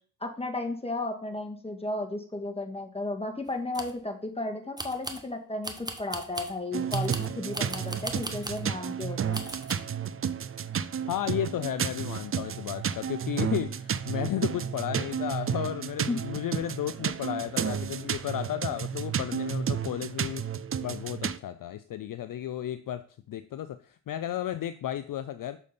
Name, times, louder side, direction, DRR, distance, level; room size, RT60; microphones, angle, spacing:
voice 1, 0.2-5.7 6.0-9.4 16.1-16.2, left 2 dB, 15° left, 3 dB, 1.8 m, -34 dB
sound 1, 3.5-4.0 4.8-5.3 5.6-6.6 6.9-8.7 9.3-9.7, right 1 dB, 10° right, 1.2 m, -38 dB
sound 2, 6.7-21.4, right 8 dB, 35° right, 0.5 m, -32 dB
voice 2, 11.1-20.5 20.8-25.6, left 11 dB, 50° left, 12 dB, 0.5 m, -33 dB
6.5 x 4.2 x 5.2 m, 0.43 s
supercardioid pair, 40°, 42 cm